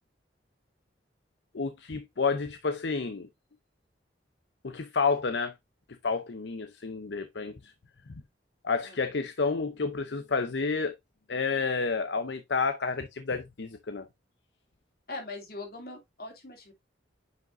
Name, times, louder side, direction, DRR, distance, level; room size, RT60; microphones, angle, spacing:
voice 1, 1.5-3.3 4.6-5.5 6.0-7.7 8.1-8.2 8.6-10.9 11.3-14.1, left 4 dB, 70° left, 0.7 m, -30 dB
voice 2, 15.1-16.7, left 2 dB, 55° left, 2.6 m, -41 dB
9.4 x 5.2 x 2.6 m
head